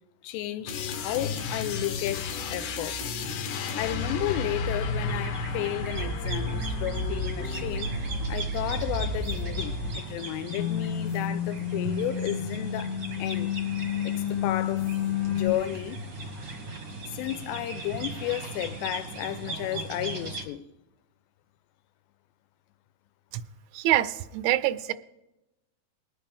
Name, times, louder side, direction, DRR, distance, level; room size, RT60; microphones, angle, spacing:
voice 1, 0.2-3.0 3.7-8.0 8.3-13.6 14.0-14.9 15.3-16.0 17.1-20.7, left 13 dB, 85° left, 2.9 m, -33 dB
sound 1, 0.7-10.2 10.5-15.5, left 5 dB, 70° left, 2.5 m, -31 dB
sound 2, 3.6-20.4, right 2 dB, 60° right, 1.1 m, -38 dB
voice 2, 23.7-24.9, right 14 dB, 85° right, 2.9 m, -25 dB
20.0 x 8.5 x 3.4 m
omnidirectional pair, 5.0 m